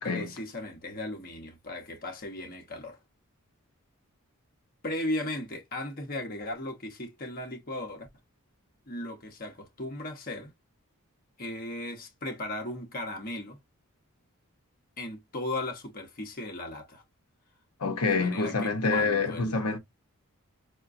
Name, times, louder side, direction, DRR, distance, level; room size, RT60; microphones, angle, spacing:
voice 1, 0.0-3.0 4.8-8.1 8.9-10.5 11.4-13.6 15.0-17.0 18.0-19.6, left 1 dB, 40° left, 0.9 m, -36 dB
voice 2, 17.8-19.8, left 4 dB, 85° left, 0.9 m, -27 dB
5.7 x 2.2 x 2.5 m
head